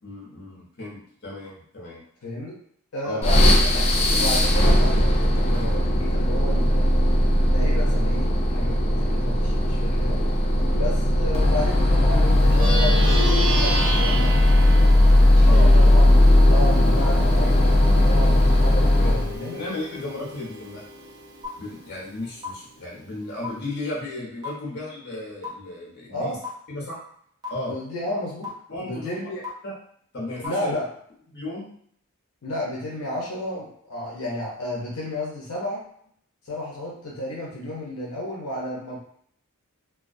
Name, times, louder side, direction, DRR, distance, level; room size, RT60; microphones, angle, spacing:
voice 1, 0.0-2.0 3.0-3.2 15.4-15.7 19.5-20.8 21.6-26.4 26.7-27.0 27.5-27.7 28.7-29.2 29.6-29.8 30.1-30.7 31.3-31.7, left 2 dB, 50° left, -4 dB, 0.8 m, -34 dB
voice 2, 2.2-2.6 2.9-3.8 4.1-7.0 7.5-10.2 10.7-14.6 15.5-16.2 16.5-19.6 26.1-26.4 27.7-28.5 28.8-29.4 30.4-30.9 32.4-35.8 36.4-39.0, left 1 dB, 80° left, -3 dB, 0.6 m, -32 dB
sound 1, 3.2-19.4, left 1 dB, 30° left, 0.3 m, -18 dB
Plucked string instrument, 12.4-22.1, right 1 dB, 70° right, 0.6 m, -31 dB
sound 2, 21.4-21.5 22.4-22.5 23.4-23.5 24.4-24.5 25.4-25.5 26.4-26.5 27.4-27.5 28.4-28.5 29.4-29.5 30.4-30.5, left 5 dB, 20° right, 0.6 m, -31 dB
2.3 x 2.2 x 2.5 m, 0.64 s
head